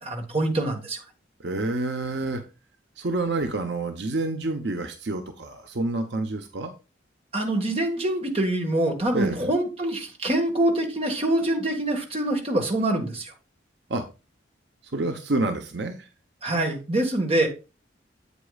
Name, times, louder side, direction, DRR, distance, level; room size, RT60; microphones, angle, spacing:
voice 1, 0.0-1.0 7.3-13.3 16.4-17.5, right 1 dB, 30° right, 2 dB, 1.5 m, -25 dB
voice 2, 1.4-2.4 3.0-6.7 9.1-9.4 13.9-14.0 14.9-16.1, right 2 dB, 65° right, 6 dB, 0.8 m, -28 dB
8.3 x 8.2 x 2.4 m, 0.30 s
head